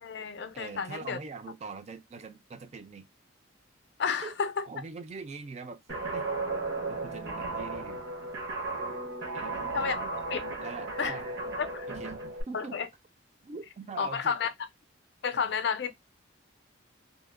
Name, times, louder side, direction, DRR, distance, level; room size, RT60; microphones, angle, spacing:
voice 1, 0.0-1.2 4.0-4.6 9.7-10.0 10.3-10.4 11.0-11.1 11.6-11.9 12.5-12.9 14.0-14.5 15.2-15.9, left 6 dB, 55° left, 0.4 m, -31 dB
voice 2, 0.5-3.1 4.2-4.4 4.7-5.8 6.1-6.2 6.9-8.2 9.3-10.2 10.6-11.3 11.9-12.9 13.4-14.4 15.3-15.5, right 4 dB, 35° right, 0.3 m, -43 dB
Guitar, 5.9-12.4, right 3 dB, 55° right, 0.8 m, -35 dB
2.7 x 2.0 x 2.4 m
head